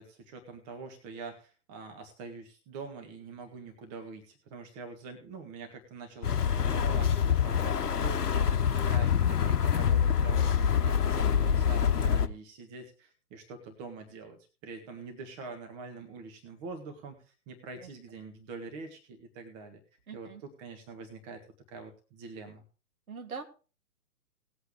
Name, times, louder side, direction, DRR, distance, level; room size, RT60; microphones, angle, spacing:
voice 1, 0.0-19.8 20.1-20.3 20.6-21.4 21.7-22.6, right 4 dB, 25° right, 5 dB, 1.7 m, -45 dB
sound 1, 6.2-12.3, left 7 dB, 70° left, 1.0 m, -26 dB
voice 2, 20.1-20.4 23.1-23.4, right 5 dB, 60° right, 4 dB, 2.9 m, -42 dB
19.0 x 8.2 x 3.4 m, 0.34 s
figure-of-eight pair, 130°, 49 cm